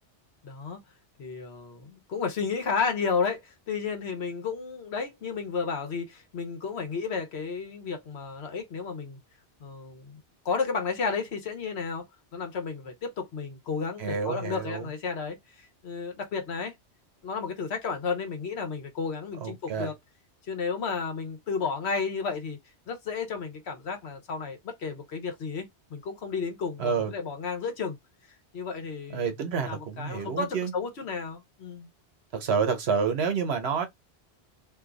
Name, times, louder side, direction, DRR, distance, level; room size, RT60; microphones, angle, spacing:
voice 1, 0.4-0.8 1.2-9.2 9.6-10.2 10.4-12.0 12.3-16.7 17.2-19.9 20.5-22.6 22.9-28.0 28.5-29.3 29.6-31.9, left 5 dB, 70° left, 1.2 m, -32 dB
voice 2, 14.0-14.9 19.4-19.9 26.8-27.1 29.1-30.7 32.3-33.9, right 6 dB, 65° right, 1.0 m, -28 dB
2.7 x 2.3 x 3.8 m
omnidirectional pair, 1.2 m